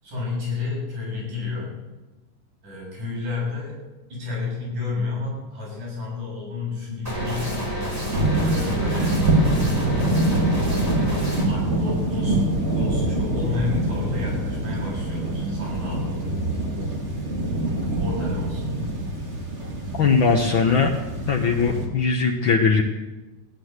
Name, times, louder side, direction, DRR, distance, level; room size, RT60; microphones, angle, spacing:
voice 1, 0.0-1.7 2.6-3.8 4.1-7.7 8.3-9.2 9.5-9.9 11.5-16.3 18.0-18.8, left 4 dB, 70° right, -5 dB, 8.8 m, -31 dB
sound 1, 7.1-11.4, equal, 5° right, 4.9 m, -29 dB
sound 2, 8.1-21.9, right 1 dB, 25° right, 2.1 m, -25 dB
voice 2, 19.9-20.9 21.3-22.8, left 5 dB, 75° left, 3 dB, 1.1 m, -20 dB
16.0 x 10.5 x 8.0 m, 1.1 s
omnidirectional pair, 3.7 m